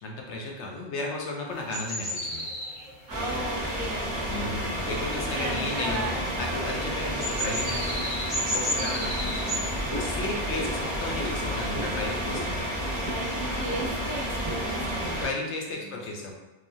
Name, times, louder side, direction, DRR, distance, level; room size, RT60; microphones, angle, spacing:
voice 1, 0.0-2.5 4.2-8.0 8.5-9.1 9.8-12.7 15.1-16.3, left 2 dB, 75° left, 0 dB, 0.9 m, -34 dB
sound 1, 1.5-15.1, equal, 20° right, 1.3 m, -36 dB
sound 2, 3.1-15.3, equal, 5° left, 0.9 m, -31 dB
voice 2, 3.1-4.8 5.4-6.2 7.0-7.6 8.8-9.6 13.0-15.3 15.7-16.0, right 2 dB, 70° right, -1 dB, 0.9 m, -37 dB
3.0 x 2.3 x 2.6 m, 1.1 s
omnidirectional pair, 1.2 m